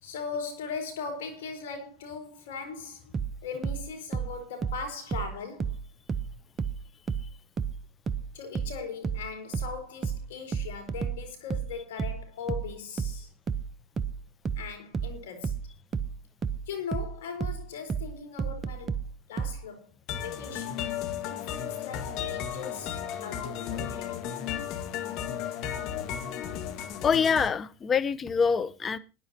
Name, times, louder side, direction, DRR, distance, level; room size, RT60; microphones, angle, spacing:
voice 1, 0.0-3.0 3.4-5.8 8.3-13.3 14.6-15.6 16.7-19.0 19.3-19.9 20.2-20.9 21.2-24.3, left 5 dB, 80° left, 4.4 m, -39 dB
sound 1, 3.1-6.3 6.6-19.6, right 6 dB, 25° right, 0.9 m, -32 dB
sound 2, 20.1-27.5, left 9 dB, 55° left, 1.8 m, -34 dB
voice 2, 27.0-29.0, left 6 dB, 30° left, 1.0 m, -25 dB
21.0 x 10.5 x 2.9 m
supercardioid pair, 105°, 0 cm